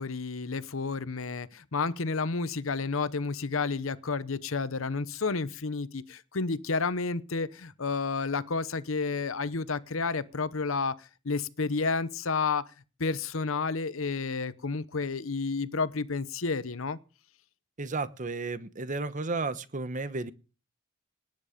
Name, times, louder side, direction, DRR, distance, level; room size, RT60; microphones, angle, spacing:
voice 1, 0.0-12.6 13.0-17.0, left 4 dB, 75° left, 0.9 m, -31 dB
voice 2, 17.8-20.3, right 3 dB, 40° right, 1.0 m, -33 dB
19.0 x 9.8 x 5.1 m
head